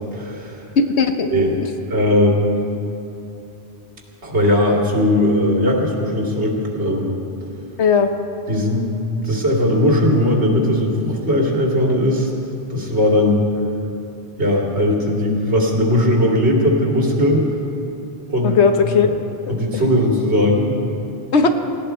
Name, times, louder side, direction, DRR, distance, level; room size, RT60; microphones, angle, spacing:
voice 1, 0.0-0.6 1.3-1.6 1.9-2.6 4.2-7.2 8.5-9.0 9.2-12.3 12.7-13.5 14.4-17.4 18.3-18.6 19.0-19.1 19.5-20.7, left 1 dB, 85° right, -1 dB, 2.7 m, -18 dB
voice 2, 0.8-1.3 1.6-1.7 7.8-8.1 18.4-19.1 19.7-19.9 21.3-21.5, left 5 dB, 85° left, 6 dB, 1.3 m, -16 dB
19.0 x 16.5 x 4.4 m, 2.8 s
omnidirectional pair, 1.1 m